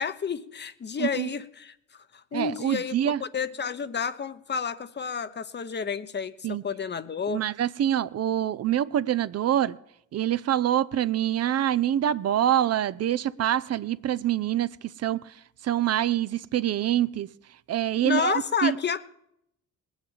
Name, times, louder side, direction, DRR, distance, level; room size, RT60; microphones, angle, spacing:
voice 1, 0.0-7.4 18.0-19.1, left 6 dB, 35° left, 0.9 m, -31 dB
voice 2, 2.3-3.2 6.4-6.6 7.3-9.8 10.1-14.7 15.0-15.2 15.6-17.3 17.7-18.7, right 11 dB, 55° right, 0.6 m, -25 dB
19.0 x 7.3 x 9.0 m
cardioid pair, 90°, 30 cm